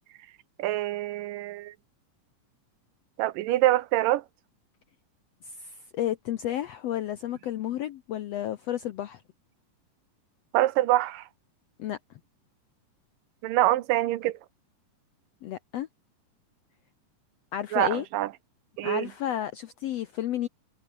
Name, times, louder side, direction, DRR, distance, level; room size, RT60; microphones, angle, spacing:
voice 1, 0.6-1.7 3.2-4.2 10.5-11.3 13.4-14.4 17.7-18.3 18.8-19.1, right 15 dB, 80° right, 2.5 m, -25 dB
voice 2, 5.4-9.2 11.8-12.0 15.4-15.9 17.5-18.0 18.8-20.5, left 12 dB, 80° left, 1.5 m, -32 dB
omnidirectional pair, 4.0 m